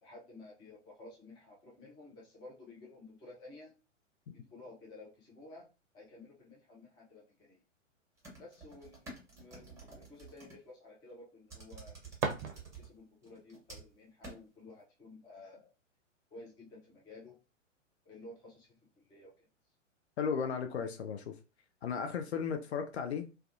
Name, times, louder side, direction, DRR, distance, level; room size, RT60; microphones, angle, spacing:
voice 1, 0.0-3.7 4.3-5.7 5.9-7.6 8.4-15.7 16.3-17.4 18.0-19.4, left 2 dB, 10° left, 0.5 m, -53 dB
sound 1, 8.2-10.6 11.5-12.9 13.2-13.9 14.2-14.4, right 3 dB, 10° right, 1.0 m, -50 dB
sound 2, 12.1-13.2, right 5 dB, 40° right, 0.6 m, -38 dB
voice 2, 20.2-21.3 21.8-23.2, left 6 dB, 60° left, 0.5 m, -35 dB
2.3 x 2.3 x 2.5 m
figure-of-eight pair, 110°, 38 cm